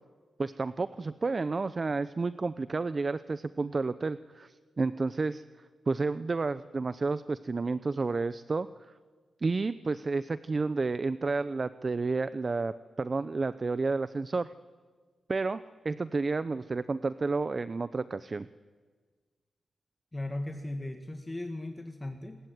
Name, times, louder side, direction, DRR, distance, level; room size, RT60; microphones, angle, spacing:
voice 1, 0.4-5.4 5.9-8.7 9.4-14.5 15.3-18.5, right 3 dB, 40° right, 14 dB, 0.7 m, -31 dB
voice 2, 20.1-22.4, left 1 dB, 20° left, 6 dB, 2.0 m, -37 dB
28.0 x 21.0 x 9.3 m, 1.5 s
cardioid pair, 85°, 0 cm